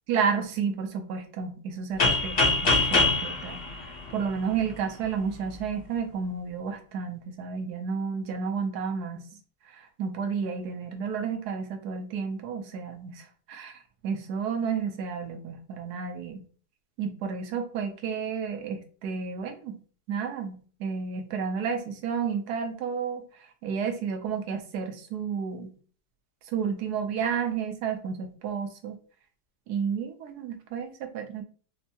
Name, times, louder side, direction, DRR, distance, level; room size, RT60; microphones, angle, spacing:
voice 1, 0.1-9.2 9.7-16.4 17.0-19.8 20.1-23.2 23.6-25.7 26.5-29.0 29.7-31.4, right 6 dB, 70° right, 5 dB, 1.1 m, -31 dB
sound 1, 2.0-4.7, left 3 dB, 45° left, 0.8 m, -24 dB
4.4 x 2.0 x 2.8 m, 0.41 s
omnidirectional pair, 1.9 m